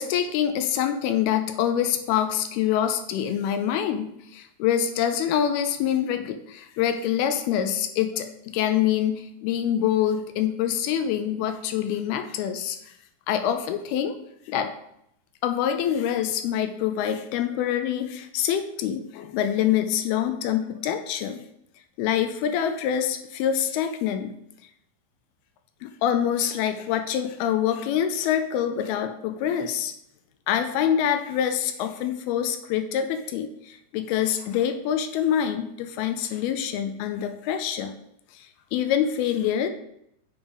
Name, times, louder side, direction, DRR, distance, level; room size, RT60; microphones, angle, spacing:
voice 1, 0.0-8.3 8.5-12.9 13.3-14.2 14.5-14.7 15.4-21.4 22.0-24.3 25.8-29.9 30.5-37.9 38.3-38.5 38.7-39.7, left 9 dB, 80° left, 7 dB, 2.4 m, -25 dB
7.3 x 4.9 x 4.9 m, 0.75 s
omnidirectional pair, 4.7 m